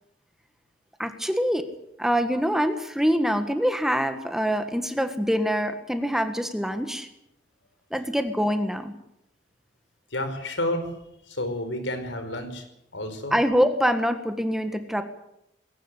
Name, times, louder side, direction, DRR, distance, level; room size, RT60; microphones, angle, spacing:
voice 1, 1.0-1.7 2.0-7.1 7.9-8.9 13.3-15.0, equal, ahead, 7 dB, 1.6 m, -25 dB
voice 2, 10.1-10.8 11.3-12.6 12.9-13.3, left 1 dB, 80° left, 8 dB, 5.0 m, -30 dB
21.5 x 18.0 x 8.3 m, 0.81 s
head